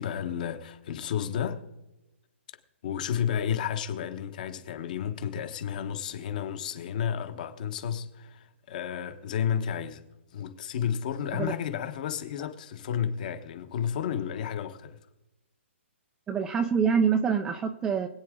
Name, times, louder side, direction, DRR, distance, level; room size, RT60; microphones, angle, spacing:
voice 1, 0.0-1.6 2.8-10.0 10.3-15.0, left 8 dB, 40° left, 1.2 m, -32 dB
voice 2, 16.3-18.1, right 6 dB, 10° right, 0.5 m, -25 dB
24.0 x 8.9 x 3.7 m
hypercardioid pair, 170°, 7 cm